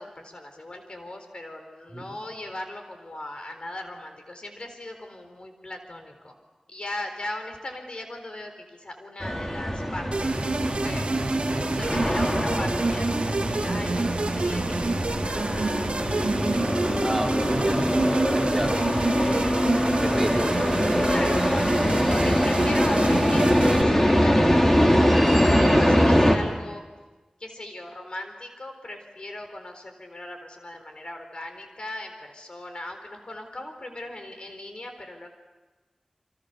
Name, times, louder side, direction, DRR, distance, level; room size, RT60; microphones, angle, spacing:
voice 1, 0.0-6.3 6.7-10.3 10.8-16.3 21.1-21.5 22.1-26.8 27.4-35.3, left 1 dB, 55° left, 5 dB, 4.1 m, -38 dB
sound 1, 9.2-26.4, equal, 20° left, 3.6 m, -23 dB
sound 2, 10.1-23.8, right 3 dB, 70° right, 2.0 m, -28 dB
voice 2, 17.0-18.9 19.2-21.1 22.1-22.4, right 1 dB, 5° right, -1 dB, 4.3 m, -33 dB
29.5 x 25.5 x 6.9 m, 1.2 s
wide cardioid pair, 80°, 2 cm